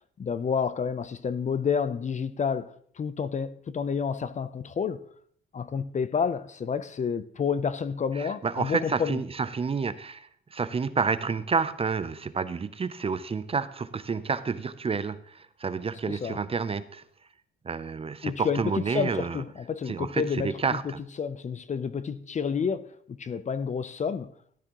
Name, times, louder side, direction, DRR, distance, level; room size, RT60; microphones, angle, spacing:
voice 1, 0.2-5.0 5.5-9.2 16.1-16.4 18.2-24.3, left 6 dB, 35° left, 0.6 m, -30 dB
voice 2, 8.2-17.0 17.6-19.4 19.9-20.8, right 5 dB, 30° right, 0.6 m, -29 dB
13.5 x 12.0 x 3.0 m
cardioid pair, 90°, 20 cm